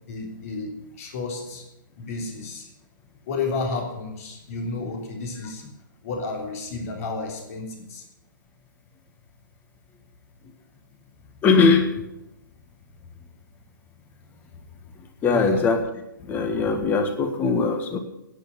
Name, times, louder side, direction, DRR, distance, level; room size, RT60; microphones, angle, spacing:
voice 1, 0.1-1.6 2.0-2.7 3.3-5.6 6.0-8.0 15.2-15.7, left 3 dB, 45° left, 2 dB, 3.4 m, -31 dB
voice 2, 11.4-11.9 15.2-15.8 16.2-18.0, left 4 dB, 15° left, 7 dB, 1.4 m, -20 dB
10.0 x 9.2 x 9.1 m, 0.91 s
hypercardioid pair, 135°, 11 cm